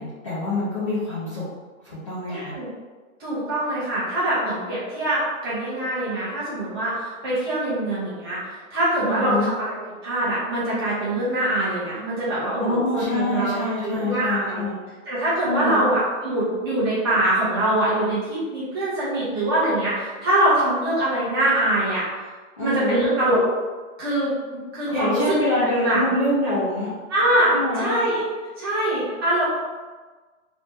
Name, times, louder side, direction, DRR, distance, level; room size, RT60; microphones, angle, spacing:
voice 1, 0.0-1.4 1.8-2.5 9.0-9.5 12.6-14.8 15.4-15.9 22.6-23.0 24.9-26.9 27.5-28.0, left 2 dB, 25° left, -11 dB, 0.5 m, -25 dB
voice 2, 2.3-2.7 3.2-9.7 10.0-13.5 13.8-14.6 15.1-22.0 22.6-23.4 24.0-25.4 25.8-26.0 27.1-28.2 28.6-29.5, right 1 dB, 20° right, -10 dB, 0.9 m, -23 dB
3.4 x 2.3 x 4.0 m, 1.3 s
hypercardioid pair, 175°, 41 cm